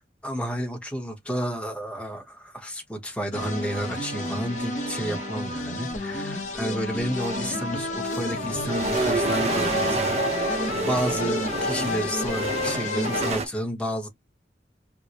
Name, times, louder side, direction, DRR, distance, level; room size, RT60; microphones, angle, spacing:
voice 1, 0.2-14.1, equal, 5° left, 0.9 m, -31 dB
sound 1, 3.3-13.3, left 2 dB, 40° left, 0.9 m, -31 dB
sound 2, 3.4-5.6 6.5-6.6 7.0-13.4, right 2 dB, 35° right, 0.7 m, -30 dB
4.5 x 2.1 x 2.9 m
head